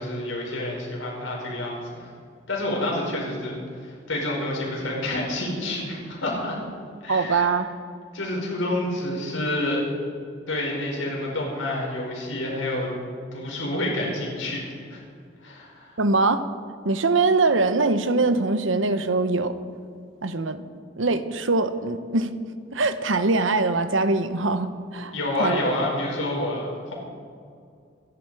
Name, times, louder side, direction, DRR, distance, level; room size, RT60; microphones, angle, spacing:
voice 1, 0.0-2.1 2.5-3.5 3.8-6.6 7.0-7.5 8.1-9.9 10.5-12.9 13.3-15.0 15.4-16.0 25.1-26.9, left 1 dB, 85° left, -2 dB, 5.1 m, -28 dB
voice 2, 7.1-7.7 16.0-16.5 16.8-19.5 20.2-20.6 21.0-22.3 22.7-25.1 25.4-25.6, right 3 dB, 75° right, 10 dB, 1.0 m, -22 dB
25.5 x 11.0 x 4.9 m, 2.3 s
head